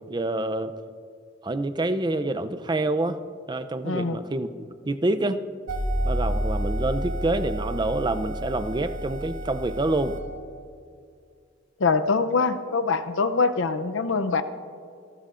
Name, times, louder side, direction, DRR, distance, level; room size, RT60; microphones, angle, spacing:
voice 1, 0.1-0.7 1.4-3.2 3.5-4.5 4.9-5.4 6.0-10.2, right 2 dB, 20° right, 10 dB, 0.5 m, -27 dB
voice 2, 3.8-4.2 11.8-14.4, left 4 dB, 70° left, 10 dB, 0.6 m, -24 dB
sound 1, 5.7-10.2, right 1 dB, 80° right, 1.8 m, -29 dB
28.5 x 13.0 x 2.5 m, 2.3 s
head